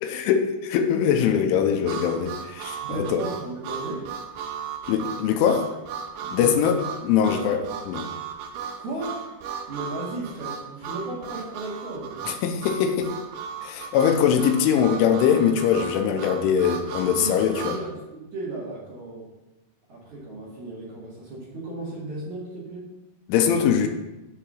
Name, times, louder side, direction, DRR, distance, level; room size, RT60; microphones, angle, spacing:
voice 1, 0.0-3.2 4.9-5.7 6.3-6.8 7.0-8.1 12.3-13.1 13.6-17.8 23.3-23.9, left 8 dB, 90° left, 5 dB, 3.2 m, -22 dB
Harmonica, 1.9-17.8, right 7 dB, 75° right, 2.8 m, -36 dB
voice 2, 2.8-4.1 6.2-6.8 7.3-7.5 8.8-9.3 9.7-12.2 17.0-19.3 19.9-22.9, right 2 dB, 50° right, -6 dB, 2.7 m, -35 dB
7.8 x 4.8 x 7.2 m, 1.0 s
omnidirectional pair, 5.6 m